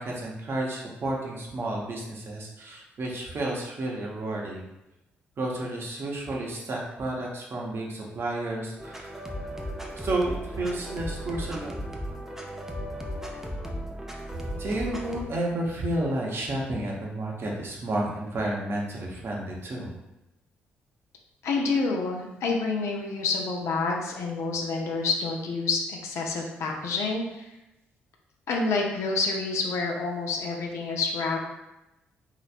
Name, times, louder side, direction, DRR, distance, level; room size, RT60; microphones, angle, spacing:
voice 1, 0.0-4.6 5.4-9.2 9.9-11.8 14.6-20.0, right 1 dB, 50° right, -2 dB, 0.9 m, -31 dB
sound 1, 8.8-15.2, equal, 10° right, 0.6 m, -36 dB
voice 2, 21.4-27.5 28.5-31.4, left 3 dB, 65° left, 0 dB, 0.6 m, -28 dB
3.1 x 2.9 x 2.5 m, 0.95 s
hypercardioid pair, 45°, 5 cm